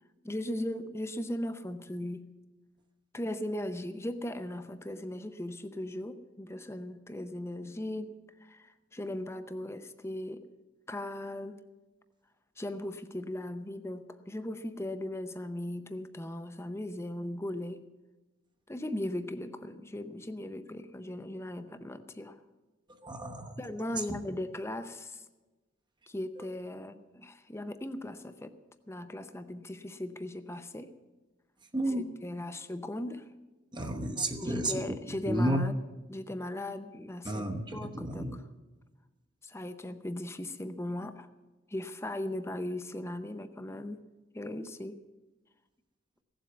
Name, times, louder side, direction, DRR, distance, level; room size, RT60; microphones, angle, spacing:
voice 1, 0.2-2.3 3.1-8.1 8.4-10.4 10.9-11.6 12.6-17.8 18.7-22.4 23.6-25.2 26.1-28.5 28.9-30.9 31.9-33.2 34.4-35.7 36.1-37.5 37.7-38.4 39.4-41.3 41.7-44.0 44.3-45.0, left 1 dB, 15° left, 10 dB, 0.6 m, -38 dB
voice 2, 23.0-24.2 31.7-32.1 33.7-34.8 35.1-35.7 37.2-38.4, right 1 dB, 25° right, 4 dB, 1.0 m, -32 dB
16.0 x 7.7 x 8.1 m, 1.2 s
head